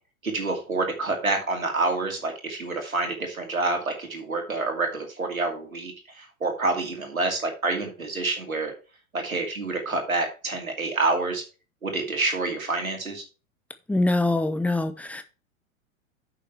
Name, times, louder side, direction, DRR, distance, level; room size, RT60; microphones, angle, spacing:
voice 1, 0.2-8.7 9.1-11.4 11.8-13.2, right 3 dB, 80° right, 2.5 m, -27 dB
voice 2, 13.9-15.2, left 2 dB, 5° left, 0.9 m, -24 dB
9.7 x 7.4 x 3.4 m
figure-of-eight pair, 90°, 41 cm